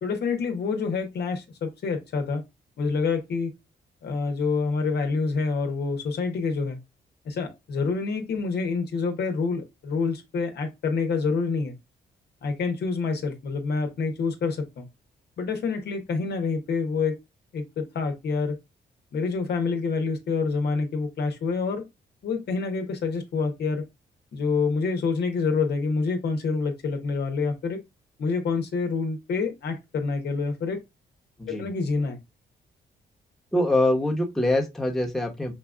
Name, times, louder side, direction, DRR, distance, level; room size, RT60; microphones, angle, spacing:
voice 1, 0.0-2.4 2.8-3.5 4.0-6.8 7.2-11.7 12.4-14.9 15.4-17.2 17.5-18.6 19.1-21.8 22.2-23.8 24.3-27.8 28.2-30.8 31.5-32.2, left 4 dB, 65° left, 0.9 m, -27 dB
voice 2, 33.5-35.5, left 1 dB, ahead, 1.1 m, -24 dB
5.7 x 2.4 x 2.3 m
cardioid pair, 75°, 18 cm